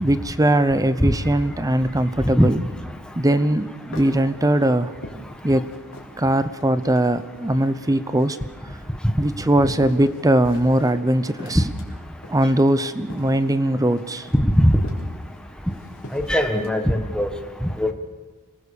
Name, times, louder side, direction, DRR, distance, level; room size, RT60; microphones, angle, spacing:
voice 1, 0.0-2.6 3.2-4.9 5.4-5.7 6.2-8.4 9.2-11.6 12.3-14.3, right 1 dB, 15° right, 13 dB, 0.8 m, -20 dB
sound 1, 3.5-6.2 6.6-7.7 8.1-11.0 11.2-16.7, equal, 60° left, 3.9 m, -42 dB
voice 2, 16.1-17.3 17.6-17.9, equal, 5° left, 4 dB, 1.4 m, -19 dB
27.0 x 19.0 x 7.0 m, 1.4 s
head